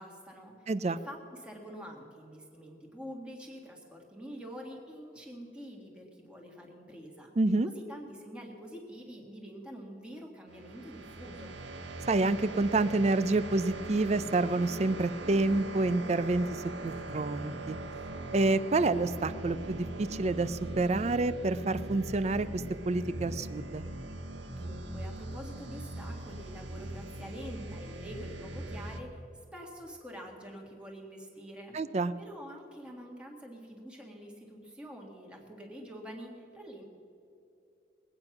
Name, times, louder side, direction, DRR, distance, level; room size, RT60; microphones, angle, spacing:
voice 1, 0.0-7.3 7.7-11.6 24.5-29.3 29.5-31.8 32.2-36.8, equal, 5° right, 0 dB, 1.7 m, -46 dB
voice 2, 0.7-1.0 7.4-7.7 12.1-17.8 18.3-23.8 31.7-32.1, right 2 dB, 35° right, 15 dB, 0.4 m, -28 dB
sound 1, 10.5-29.0, right 2 dB, 90° right, 1.1 m, -41 dB
21.0 x 8.8 x 5.9 m, 2.9 s
head